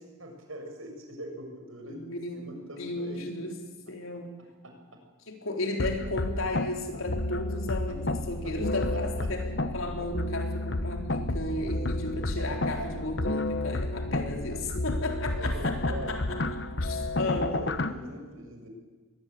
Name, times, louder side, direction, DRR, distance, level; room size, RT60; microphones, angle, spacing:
voice 1, 0.2-2.0 2.3-3.3 4.6-5.0 7.9-8.0 8.4-8.6 8.9-9.3 12.4-12.5 12.8-12.9 15.3-16.1 17.2-18.7, right 1 dB, 80° right, 3 dB, 6.2 m, -42 dB
voice 2, 1.9-2.5 2.8-3.5 3.9-4.3 5.3-9.4 9.7-16.4 16.8-17.5, left 2 dB, 80° left, 2 dB, 4.0 m, -34 dB
sound 1, 5.8-17.9, left 2 dB, 55° left, 1.1 m, -31 dB
22.0 x 19.0 x 8.8 m, 1.3 s
head